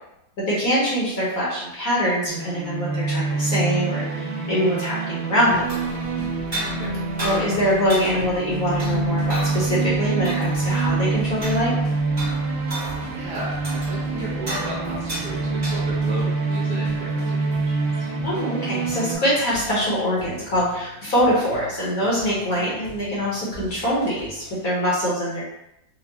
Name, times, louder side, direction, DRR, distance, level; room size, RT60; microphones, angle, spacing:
voice 1, 0.5-4.0 4.5-5.6 7.2-11.7 18.2-25.4, equal, 55° left, -6 dB, 1.3 m, -23 dB
sound 1, 2.3-19.2, right 3 dB, 90° right, 1.6 m, -26 dB
sound 2, 5.5-24.6, left 1 dB, 70° left, 1.5 m, -42 dB
sound 3, 5.5-16.2, right 1 dB, 30° right, 1.4 m, -35 dB
voice 2, 13.0-18.1, right 2 dB, 55° right, -6 dB, 1.4 m, -35 dB
4.5 x 2.3 x 2.8 m, 0.84 s
omnidirectional pair, 2.1 m